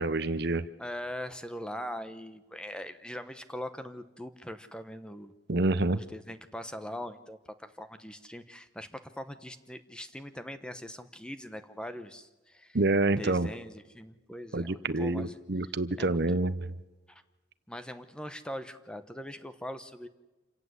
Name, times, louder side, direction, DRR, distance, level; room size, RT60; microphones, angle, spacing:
voice 1, 0.0-0.7 5.5-6.0 12.7-13.5 14.5-16.7, right 2 dB, 55° right, 14 dB, 0.8 m, -27 dB
voice 2, 0.8-5.3 5.9-12.8 13.2-15.4 16.0-16.2 17.1-17.2 17.7-20.1, equal, 5° left, 10 dB, 1.0 m, -41 dB
27.5 x 17.5 x 8.2 m, 1.1 s
head